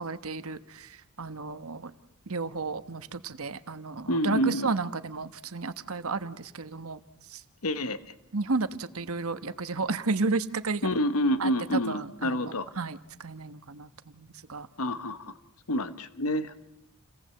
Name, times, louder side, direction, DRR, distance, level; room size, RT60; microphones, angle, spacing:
voice 1, 0.0-1.9 2.3-7.0 7.3-7.4 8.3-10.9 11.4-14.7, right 3 dB, 75° right, 11 dB, 1.2 m, -33 dB
voice 2, 4.1-4.7 7.6-8.0 10.8-12.7 14.8-15.3 15.7-16.5, equal, 80° left, 12 dB, 1.3 m, -28 dB
28.5 x 18.5 x 7.7 m, 0.87 s
head